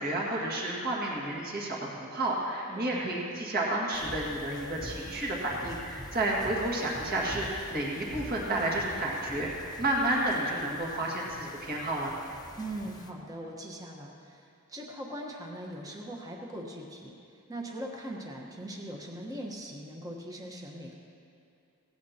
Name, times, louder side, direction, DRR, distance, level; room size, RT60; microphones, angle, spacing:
voice 1, 0.0-12.1, right 1 dB, 45° right, -4 dB, 1.9 m, -31 dB
voice 2, 2.7-3.1 12.6-17.1 17.5-21.0, right 1 dB, 15° right, 0 dB, 1.1 m, -40 dB
sound 1, 3.9-13.1, left 1 dB, 20° left, 0.9 m, -46 dB
18.0 x 15.5 x 2.9 m, 2.5 s
head